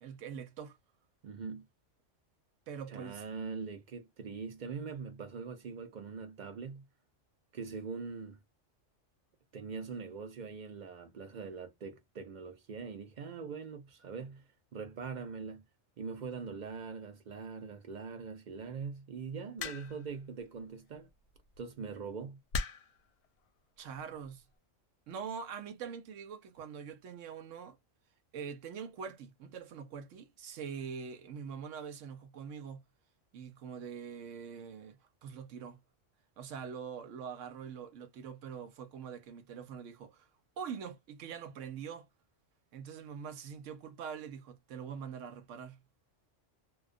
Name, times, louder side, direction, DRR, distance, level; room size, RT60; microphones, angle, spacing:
voice 1, 0.0-0.8 2.7-3.2 23.8-24.4 25.1-27.8 28.3-32.8 33.3-35.8 36.4-40.3 40.6-42.1 42.7-45.8, right 7 dB, 80° right, 1.0 m, -44 dB
voice 2, 1.2-1.7 2.9-6.8 7.5-8.4 9.5-14.4 14.7-15.6 16.0-21.1 21.6-22.4, right 5 dB, 50° right, 0.6 m, -42 dB
sound 1, 19.6-20.1 21.3-21.6 22.5-23.0 24.0-24.3, left 4 dB, 70° left, 0.8 m, -37 dB
2.3 x 2.3 x 2.3 m
omnidirectional pair, 1.3 m